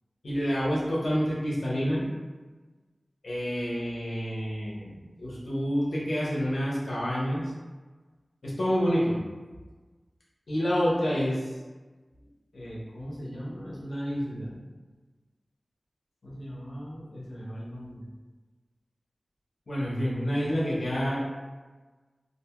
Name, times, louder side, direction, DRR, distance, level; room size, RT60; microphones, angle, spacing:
voice 1, 0.2-2.0 3.2-7.5 8.4-9.2 10.5-11.5 12.5-14.6 16.2-18.0 19.7-21.2, equal, 85° left, -6 dB, 0.8 m, -29 dB
2.6 x 2.2 x 2.8 m, 1.3 s
wide cardioid pair, 50°, 0 cm